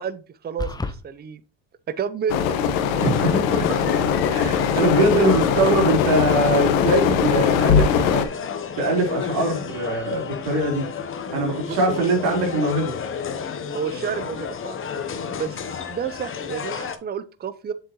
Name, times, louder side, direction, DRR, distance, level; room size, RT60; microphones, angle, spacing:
voice 1, 0.0-1.4 1.9-2.7 11.7-12.0 13.7-14.8 15.3-17.7, right 7 dB, 25° right, 14 dB, 0.7 m, -30 dB
sound 1, 0.6-1.0, left 3 dB, 10° left, 0.6 m, -28 dB
sound 2, 2.3-8.2, left 7 dB, 85° left, 1.2 m, -21 dB
sound 3, 3.0-17.0, left 6 dB, 30° left, 0.9 m, -32 dB
voice 2, 3.0-3.8 4.3-8.3 8.8-10.8 11.3-13.0, right 2 dB, 70° right, 0 dB, 3.9 m, -22 dB
7.3 x 6.9 x 3.0 m, 0.34 s
supercardioid pair, 90°, 40 cm